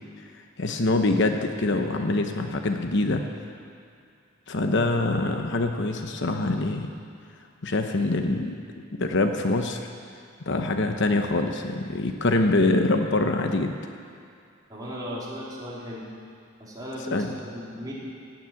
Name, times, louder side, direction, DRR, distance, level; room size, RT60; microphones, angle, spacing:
voice 1, 0.6-3.2 4.5-6.9 7.6-8.6 8.9-9.8 10.5-13.7 17.1-17.3, left 2 dB, 60° left, 5 dB, 1.0 m, -24 dB
voice 2, 14.7-16.0 16.6-17.9, equal, 20° right, -7 dB, 3.9 m, -36 dB
16.5 x 9.3 x 9.0 m, 2.4 s
head